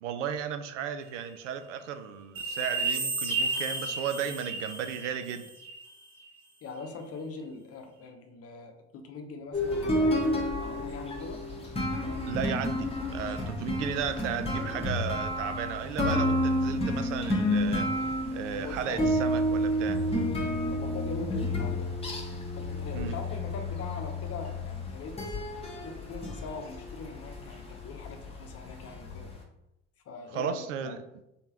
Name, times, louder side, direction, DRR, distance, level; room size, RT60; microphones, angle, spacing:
voice 1, 0.0-5.5 12.3-20.0 22.9-23.2 30.3-31.0, right 8 dB, 80° right, 9 dB, 0.5 m, -35 dB
sound 1, 2.3-5.8 6.2-6.3, right 3 dB, 35° right, 1.4 m, -32 dB
voice 2, 6.6-10.2 10.5-11.5 18.6-19.2 20.7-21.9 22.6-25.2 25.8-29.3 30.1-31.0, left 4 dB, 40° left, 5 dB, 0.8 m, -42 dB
sound 2, 9.5-29.3, left 1 dB, 15° left, 1.2 m, -30 dB
3.8 x 3.6 x 2.8 m, 0.89 s
hypercardioid pair, 65°, 37 cm